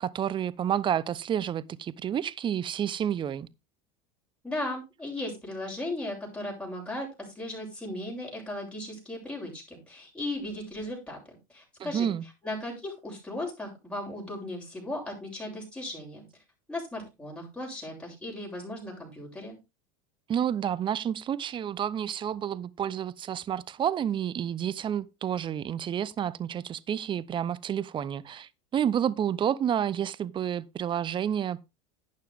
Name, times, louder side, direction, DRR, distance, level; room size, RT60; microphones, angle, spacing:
voice 1, 0.0-3.5 11.8-12.2 20.3-31.6, right 9 dB, 30° right, 0.8 m, -30 dB
voice 2, 4.4-11.2 11.5-12.1 12.4-16.2 16.7-19.6, left 1 dB, 5° left, 7.8 m, -36 dB
11.5 x 8.9 x 3.6 m
supercardioid pair, 110°, 17 cm